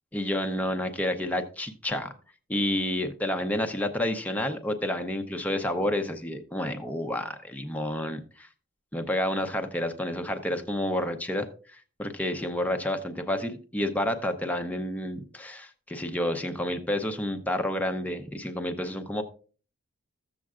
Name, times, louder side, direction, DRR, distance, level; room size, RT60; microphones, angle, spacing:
voice 1, 0.1-2.1 2.5-8.5 8.9-19.2, left 1 dB, 5° left, 5 dB, 0.6 m, -30 dB
14.0 x 7.4 x 2.4 m, 0.39 s
head